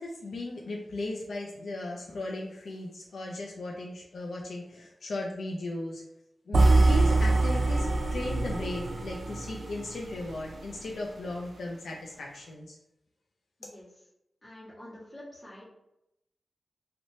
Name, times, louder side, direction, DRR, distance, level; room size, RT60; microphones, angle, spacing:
voice 1, 0.0-6.0 6.5-12.8, left 2 dB, 85° left, -1 dB, 0.3 m, -37 dB
sound 1, 6.5-10.6, right 2 dB, 60° right, 0.4 m, -24 dB
voice 2, 14.4-15.8, left 1 dB, 30° left, -7 dB, 1.2 m, -47 dB
2.9 x 2.0 x 2.6 m, 0.86 s
wide cardioid pair, 85°, 0 cm